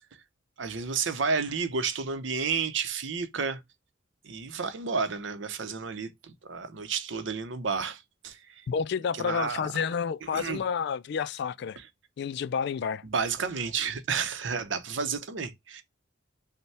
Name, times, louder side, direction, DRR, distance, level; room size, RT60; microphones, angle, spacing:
voice 1, 0.6-3.6 4.2-8.7 9.2-9.7 10.3-10.6 11.8-11.9 13.0-15.8, right 5 dB, 65° right, 0.7 m, -31 dB
voice 2, 8.7-11.8 12.2-13.0, left 6 dB, 60° left, 0.3 m, -30 dB
5.3 x 2.2 x 3.3 m
head